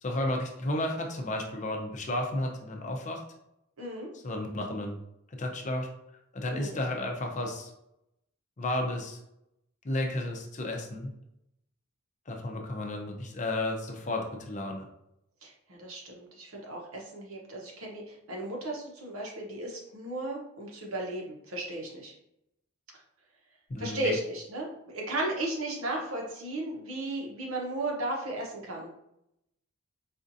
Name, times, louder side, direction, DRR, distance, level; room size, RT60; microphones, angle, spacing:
voice 1, 0.0-3.2 4.1-5.0 5.3-5.9 6.3-7.7 8.6-9.2 9.8-11.1 12.3-14.9 23.7-24.2, left 1 dB, 35° left, 2 dB, 0.5 m, -32 dB
voice 2, 3.8-4.1 6.5-6.8 15.4-15.5 15.8-22.1 23.8-28.9, right 2 dB, 80° right, -1 dB, 0.9 m, -35 dB
4.2 x 2.4 x 2.6 m, 0.82 s
head